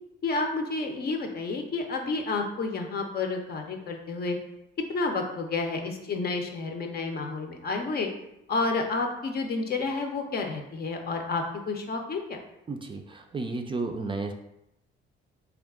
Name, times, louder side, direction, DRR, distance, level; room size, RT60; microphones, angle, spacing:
voice 1, 0.2-4.4 4.9-8.1 8.5-12.4, left 3 dB, 50° left, 3 dB, 0.6 m, -30 dB
voice 2, 12.7-14.3, right 3 dB, 25° right, 4 dB, 0.4 m, -32 dB
3.6 x 2.3 x 3.6 m, 0.84 s
cardioid pair, 90°, 20 cm